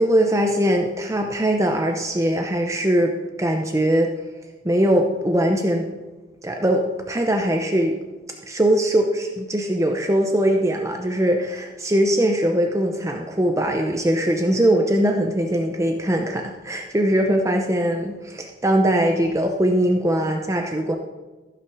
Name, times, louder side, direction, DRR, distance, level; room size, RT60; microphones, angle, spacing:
voice 1, 0.0-3.1 3.4-4.1 4.6-5.8 6.4-8.0 8.5-21.0, right 1 dB, 20° right, 3 dB, 0.8 m, -21 dB
14.5 x 5.9 x 6.2 m, 1.2 s
head